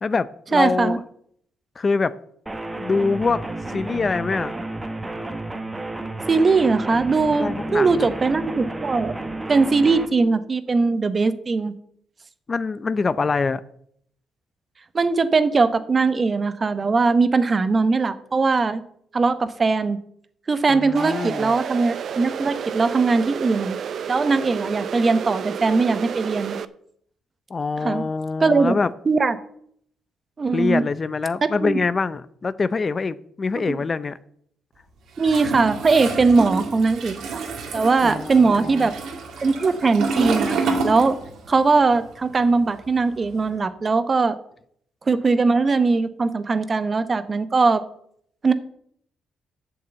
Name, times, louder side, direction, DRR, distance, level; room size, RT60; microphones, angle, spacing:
voice 1, 0.0-1.0 1.8-2.1 2.8-3.4 3.7-4.6 7.4-8.1 12.5-13.6 20.7-21.5 27.5-28.9 30.5-34.2 38.0-38.9, left 4 dB, 35° left, 16 dB, 0.5 m, -24 dB
voice 2, 0.5-1.0 6.3-9.1 9.5-11.7 14.9-18.8 19.1-20.0 20.5-23.8 24.1-26.6 27.8-28.1 28.4-28.7 29.1-29.4 30.4-30.8 31.4-31.8 33.5-33.8 35.2-37.4 37.7-38.9 39.4-41.2 41.5-44.4 45.1-47.8 48.4-48.5, right 4 dB, 35° right, 13 dB, 0.9 m, -20 dB
sound 1, 2.5-10.1, right 2 dB, 15° right, 1.2 m, -31 dB
sound 2, 21.0-26.7, right 7 dB, 60° right, 0.6 m, -31 dB
Toilet flush, 35.2-41.6 41.9-43.5, right 4 dB, 75° right, 2.2 m, -28 dB
8.7 x 6.7 x 8.0 m, 0.68 s
cardioid pair, 90°, 0 cm